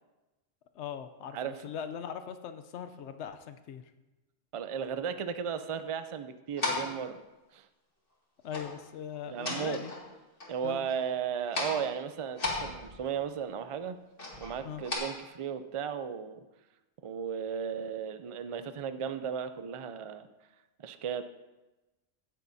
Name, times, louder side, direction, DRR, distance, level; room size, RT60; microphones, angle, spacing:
voice 1, 0.7-3.8 8.4-9.9 10.6-10.9 14.6-14.8, left 8 dB, 80° left, 9 dB, 1.0 m, -40 dB
voice 2, 4.5-7.2 7.5-7.7 9.3-9.8 10.5-14.0 14.4-16.4 17.0-20.3 20.8-21.2, right 7 dB, 45° right, 10 dB, 0.4 m, -35 dB
sound 1, 6.6-7.0 8.5-8.7 9.1-10.1 10.4-11.1 11.4-11.8 12.3-13.2 14.2-14.9, left 3 dB, 50° left, 2.4 m, -36 dB
16.0 x 10.5 x 2.7 m, 1.1 s
omnidirectional pair, 1.2 m